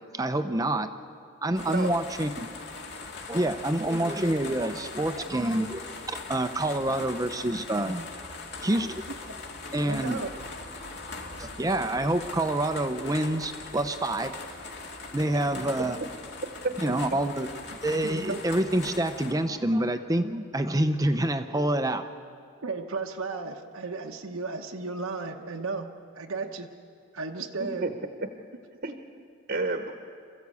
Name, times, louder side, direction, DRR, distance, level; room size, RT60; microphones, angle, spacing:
voice 1, 0.1-0.9 1.4-2.3 3.3-8.0 8.6-9.0 9.7-10.2 11.4-14.4 15.1-16.0 16.8-22.1, right 1 dB, 15° right, 9 dB, 0.6 m, -27 dB
sound 1, 1.6-19.3, left 3 dB, 50° left, 2.4 m, -41 dB
voice 2, 9.8-10.3 18.0-18.4 22.6-25.9 26.1-26.7 27.1-27.9, right 3 dB, 80° right, 2 dB, 1.1 m, -34 dB
voice 3, 16.4-16.9 27.6-27.9 28.2-28.3 28.8-29.0 29.5-29.9, right 2 dB, 45° right, 6 dB, 1.1 m, -31 dB
27.0 x 14.5 x 8.3 m, 2.4 s
head